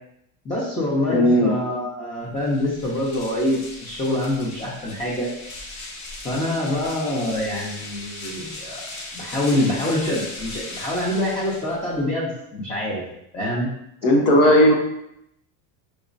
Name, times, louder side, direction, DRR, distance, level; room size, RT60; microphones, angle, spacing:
voice 1, 0.4-5.3 6.2-13.0 13.3-13.7, left 1 dB, 15° left, -6 dB, 0.9 m, -25 dB
voice 2, 1.1-1.5 14.0-14.7, equal, 75° left, 0 dB, 1.3 m, -15 dB
sound 1, 2.4-12.0, left 2 dB, 40° left, 0.9 m, -38 dB
6.1 x 2.9 x 2.6 m, 0.80 s
cardioid pair, 130°, 43 cm